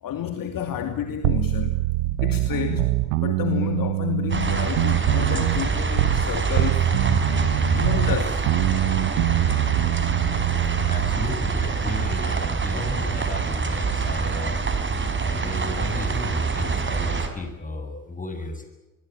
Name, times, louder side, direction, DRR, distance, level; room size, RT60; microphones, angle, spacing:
voice 1, 0.0-6.9 7.7-8.5, left 9 dB, 45° left, 6 dB, 2.7 m, -30 dB
sound 1, 1.2-6.3 6.6-11.3, right 19 dB, 65° right, 1.0 m, -24 dB
sound 2, 4.3-17.3, right 4 dB, 25° right, 4.9 m, -25 dB
voice 2, 10.9-14.6 14.9-18.7, left 2 dB, 15° left, 7 dB, 7.7 m, -33 dB
25.5 x 22.0 x 8.7 m, 1.1 s
hypercardioid pair, 65°, 45 cm